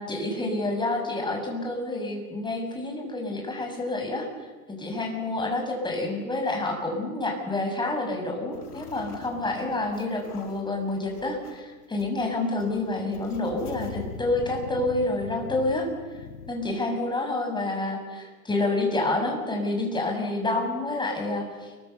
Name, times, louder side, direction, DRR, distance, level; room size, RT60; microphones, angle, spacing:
voice 1, 0.0-4.3 4.7-15.9 16.5-21.7, left 2 dB, 10° left, 3 dB, 6.8 m, -28 dB
sound 1, 8.5-11.6 12.0-12.1 12.4-16.5, left 6 dB, 85° left, 3.8 m, -42 dB
29.5 x 24.0 x 7.0 m, 1.3 s
hypercardioid pair, 120°, 45 cm